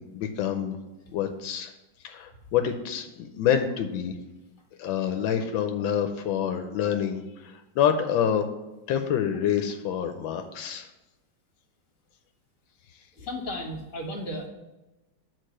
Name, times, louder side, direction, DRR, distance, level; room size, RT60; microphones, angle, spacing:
voice 1, 0.1-0.8 1.1-1.7 2.0-4.1 4.8-8.5 8.9-10.9, left 9 dB, 85° left, 7 dB, 1.4 m, -27 dB
voice 2, 13.2-14.5, left 1 dB, 45° left, 2 dB, 1.7 m, -34 dB
6.5 x 4.4 x 6.3 m, 1.0 s
omnidirectional pair, 2.1 m